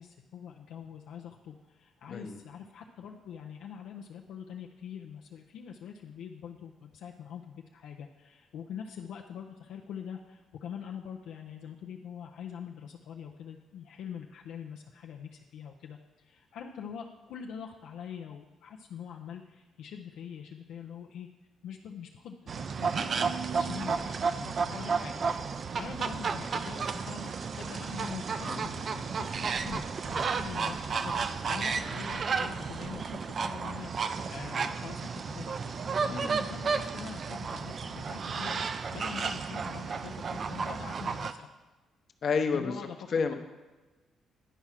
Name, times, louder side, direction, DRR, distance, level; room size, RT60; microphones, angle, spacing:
voice 1, 0.0-21.3 21.6-31.2 31.5-35.8 36.0-41.5 42.5-43.2, left 8 dB, 80° left, 1 dB, 0.5 m, -44 dB
voice 2, 2.1-2.4 28.4-28.6 36.1-36.4 42.2-42.8 43.1-43.3, left 5 dB, 55° left, 6 dB, 0.8 m, -30 dB
sound 1, 22.5-41.3, right 5 dB, 45° right, 0.4 m, -32 dB
10.0 x 4.8 x 5.7 m, 1.2 s
cardioid pair, 90°, 0 cm